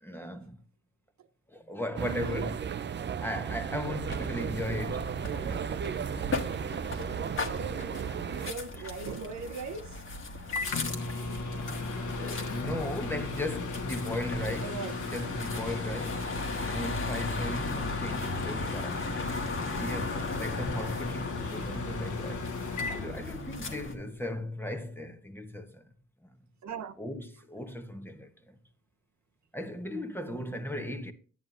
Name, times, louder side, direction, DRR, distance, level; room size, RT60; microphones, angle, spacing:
voice 1, 0.0-0.6 1.5-2.6 3.2-5.8 8.8-8.9 10.4-10.5 12.2-16.3 16.7-19.0 19.7-22.5 22.9-25.9 26.2-26.3 27.0-28.5 29.5-31.1, left 1 dB, 5° left, 1.0 m, -37 dB
sound 1, 2.0-8.5, right 7 dB, 35° right, 0.5 m, -34 dB
voice 2, 2.0-2.5 7.5-10.0 14.6-15.1 26.6-26.9, right 5 dB, 60° right, 0.8 m, -40 dB
sound 2, 4.0-23.9, left 3 dB, 40° left, 1.5 m, -37 dB
Microwave oven, 9.8-23.9, left 3 dB, 65° left, 1.4 m, -37 dB
10.5 x 9.1 x 2.6 m
cardioid pair, 80°, 33 cm